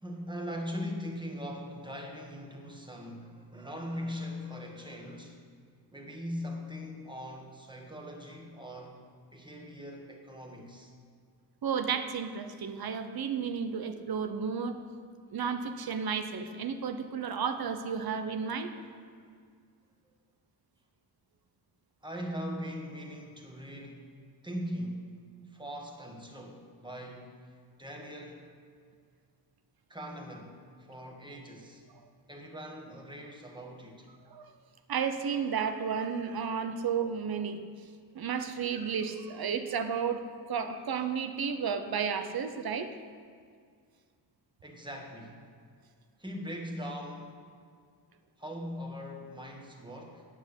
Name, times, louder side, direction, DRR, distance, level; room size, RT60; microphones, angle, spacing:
voice 1, 0.0-5.4 5.9-9.0 9.3-10.9 18.7-18.9 22.0-24.1 24.4-25.0 25.5-28.5 29.9-31.8 32.3-34.1 44.6-45.5 46.2-47.4 48.4-50.3, equal, 10° right, 1 dB, 1.6 m, -41 dB
voice 2, 11.6-14.8 15.3-18.7 34.3-34.5 34.9-37.6 38.1-40.2 40.5-42.9, right 6 dB, 60° right, 8 dB, 0.9 m, -32 dB
9.4 x 8.3 x 8.2 m, 2.1 s
wide cardioid pair, 130°, 41 cm